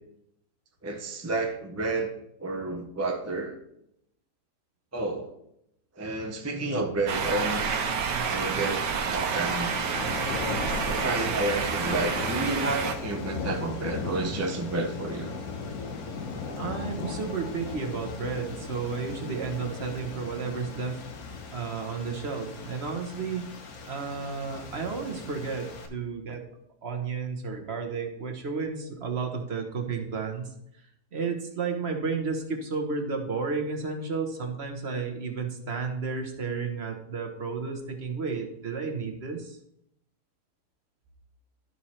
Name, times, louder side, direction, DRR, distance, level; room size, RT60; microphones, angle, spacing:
voice 1, 0.8-2.1 2.4-3.5 4.9-5.4 6.0-7.8 8.3-8.8 9.1-9.7 10.9-15.3, right 2 dB, 20° right, 3 dB, 0.4 m, -30 dB
sound 1, 7.1-12.9, right 5 dB, 80° right, 1.5 m, -29 dB
sound 2, 9.3-25.9, left 4 dB, 60° left, 1.4 m, -37 dB
voice 2, 16.6-21.0 21.5-23.5 23.8-26.4 26.8-30.5 31.1-39.6, right 5 dB, 45° right, 3 dB, 1.1 m, -32 dB
12.0 x 4.6 x 4.3 m, 0.76 s
omnidirectional pair, 1.8 m